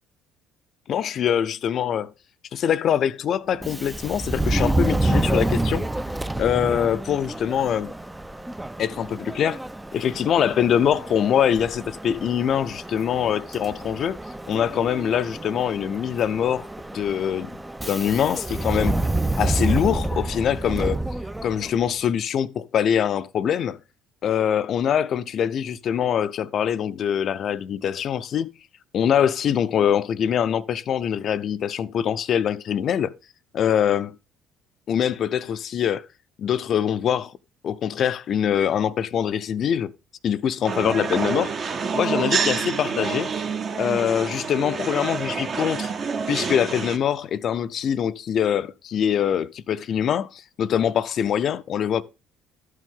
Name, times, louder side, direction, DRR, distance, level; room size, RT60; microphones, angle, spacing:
voice 1, 0.9-2.1 2.5-5.9 6.4-7.9 8.8-9.6 9.9-14.2 14.5-16.7 16.9-17.5 17.9-19.0 19.4-21.0 21.4-23.8 24.2-28.5 28.9-33.1 33.5-34.1 34.9-36.0 36.4-37.3 37.6-39.9 40.2-41.7 41.9-43.3 43.8-45.9 46.3-52.0, left 9 dB, 55° left, 0.5 m, -23 dB
Subway metro underground, 3.5-21.9, right 2 dB, 10° right, 0.4 m, -28 dB
sound 1, 40.6-47.0, right 5 dB, 45° right, 1.0 m, -27 dB
11.5 x 6.4 x 3.6 m
supercardioid pair, 75°, 0 cm